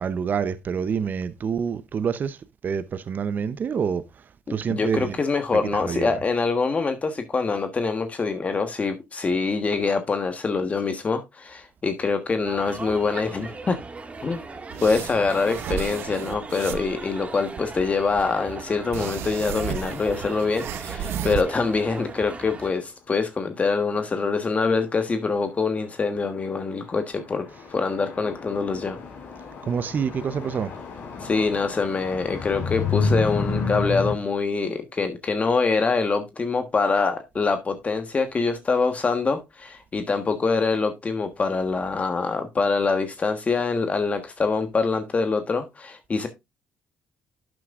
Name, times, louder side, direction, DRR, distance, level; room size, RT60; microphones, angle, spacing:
voice 1, 0.0-2.4 2.6-4.1 4.5-5.2 5.6-6.2 29.6-30.7, right 6 dB, 50° right, 0.8 m, -27 dB
voice 2, 4.5-13.8 14.2-14.4 14.8-29.0 31.2-46.3, left 4 dB, 35° left, 1.4 m, -25 dB
sound 1, 12.4-22.7, right 3 dB, 30° right, 2.0 m, -38 dB
sound 2, 14.7-17.0 17.5-18.3 18.9-21.4, right 9 dB, 75° right, 0.9 m, -33 dB
sound 3, 26.0-26.1 26.3-26.8 27.1-34.1, left 4 dB, 60° left, 3.8 m, -30 dB
11.5 x 7.8 x 2.5 m
supercardioid pair, 70°, 4 cm